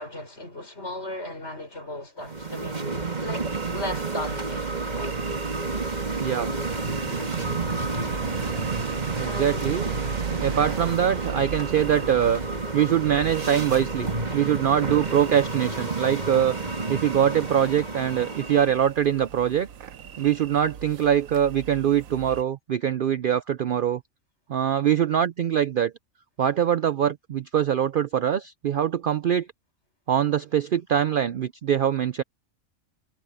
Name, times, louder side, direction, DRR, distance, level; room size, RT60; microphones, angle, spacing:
voice 1, 0.0-2.9 3.2-3.5 3.7-4.7 4.9-5.2 9.2-9.8 10.3-10.6, left 1 dB, 55° left, 6.2 m, -36 dB
sound 1, 2.2-18.8, right 3 dB, 30° right, 2.4 m, -30 dB
sound 2, 3.4-22.4, right 8 dB, 90° right, 1.3 m, -38 dB
voice 2, 6.2-6.5 9.2-9.9 10.4-12.4 12.7-16.6 16.9-19.7 20.2-24.0 24.5-25.9 26.4-29.5 30.1-32.2, right 9 dB, 60° right, 0.5 m, -23 dB
omnidirectional pair, 1.4 m